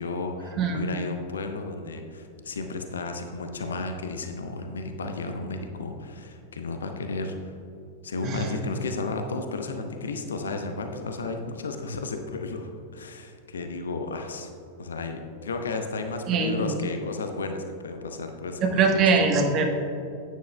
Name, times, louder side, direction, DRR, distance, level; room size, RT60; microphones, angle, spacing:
voice 1, 0.0-7.5 8.0-14.5 14.8-19.1, left 3 dB, 70° left, 5 dB, 0.8 m, -33 dB
voice 2, 0.6-0.9 8.2-8.5 16.3-16.6 18.6-19.6, right 4 dB, 35° right, 2 dB, 1.2 m, -22 dB
12.5 x 9.5 x 2.3 m, 2.7 s
figure-of-eight pair, 90°, 0 cm